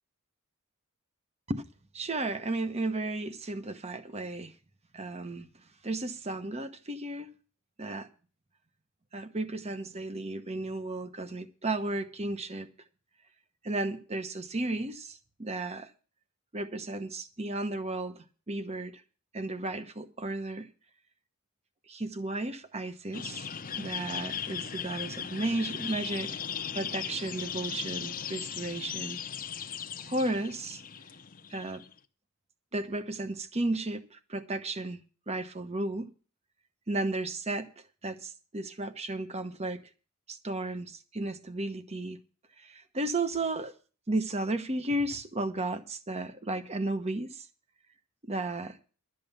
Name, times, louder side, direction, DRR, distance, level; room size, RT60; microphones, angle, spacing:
voice 1, 1.9-4.5 4.9-5.5 5.8-7.3 7.8-8.1 9.1-12.7 13.6-15.9 16.5-19.0 19.3-20.7 21.9-23.5 23.8-26.4 26.7-29.2 30.0-30.8 31.5-31.8 32.7-36.1 36.9-39.8 40.3-42.2 42.6-43.7 44.1-47.5 48.2-48.8, right 2 dB, 30° right, 1.0 m, -34 dB
sound 1, 23.1-31.9, left 8 dB, 40° left, 0.8 m, -38 dB
12.0 x 7.8 x 6.9 m
head